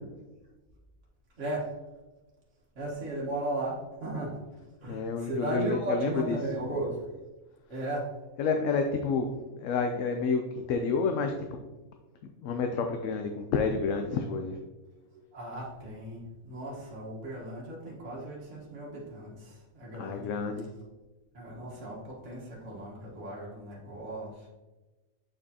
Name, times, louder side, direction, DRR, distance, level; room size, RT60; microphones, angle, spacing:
voice 1, 1.4-1.7 2.8-4.5 4.8-7.0 7.7-8.1 15.3-20.4 21.3-24.5, right 1 dB, 65° right, -4 dB, 1.7 m, -36 dB
voice 2, 4.9-6.4 8.4-9.3 9.6-11.3 12.4-14.6 20.0-20.7, left 5 dB, 75° left, 4 dB, 0.9 m, -29 dB
6.6 x 5.3 x 2.8 m, 1.2 s
omnidirectional pair, 1.4 m